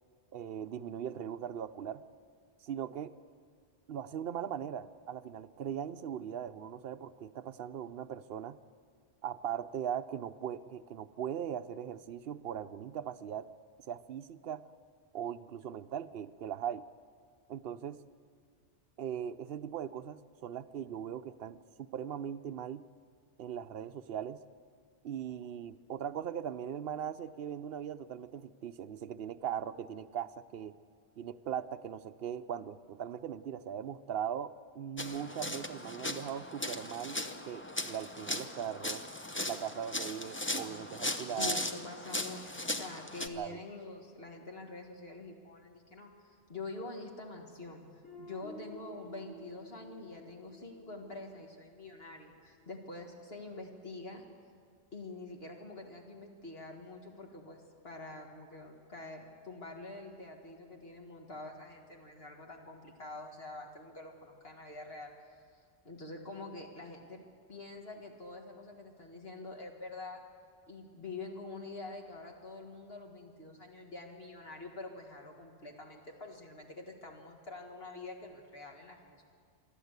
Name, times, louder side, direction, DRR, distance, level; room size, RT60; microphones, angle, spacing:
voice 1, 0.3-2.0 2.6-3.1 3.9-8.6 9.2-13.5 13.9-14.6 15.1-16.8 17.5-18.0 19.0-21.6 21.9-22.8 23.4-24.4 25.0-30.7 31.2-37.2 37.5-39.0 39.4-41.6 43.3-43.6, right 9 dB, 60° right, 13 dB, 0.8 m, -39 dB
sound 1, 35.0-43.3, left 1 dB, 15° left, 0.6 m, -38 dB
voice 2, 41.4-47.9 48.2-54.2 54.9-65.1 65.8-67.2 67.5-70.2 70.7-79.2, left 2 dB, 60° left, 1 dB, 2.0 m, -46 dB
Guitar, 48.0-52.7, equal, 90° left, 6.0 m, -53 dB
27.0 x 11.5 x 8.1 m, 2.1 s
omnidirectional pair, 1.2 m